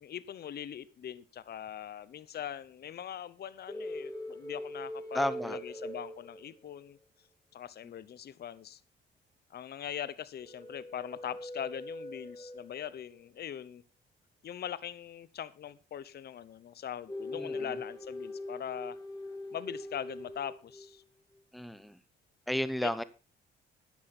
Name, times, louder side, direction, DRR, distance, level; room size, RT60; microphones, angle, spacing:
voice 1, 0.0-7.0 7.5-8.8 9.5-13.8 14.4-19.0 19.5-21.0 22.8-22.9, left 9 dB, 55° left, 17 dB, 0.8 m, -41 dB
sound 1, 3.7-6.9 10.4-13.0 17.1-20.9, left 1 dB, 20° left, 3.2 m, -42 dB
voice 2, 5.1-5.6 17.3-17.5 21.5-21.9 22.5-23.0, equal, ahead, 15 dB, 0.9 m, -32 dB
12.0 x 10.0 x 4.3 m, 0.32 s
cardioid pair, 90°, 20 cm